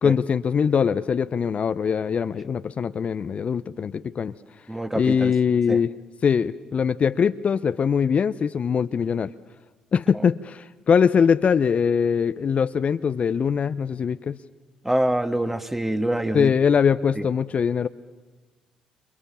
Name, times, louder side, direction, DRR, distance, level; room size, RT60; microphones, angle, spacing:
voice 1, 0.0-4.3 4.9-5.9 6.2-9.3 9.9-14.4 16.3-17.9, left 6 dB, 45° left, 0.8 m, -22 dB
voice 2, 4.7-5.3 5.7-5.8 14.8-16.5 17.2-17.3, right 1 dB, 10° right, 1.9 m, -25 dB
29.0 x 27.5 x 7.2 m
hypercardioid pair, 50°, 3 cm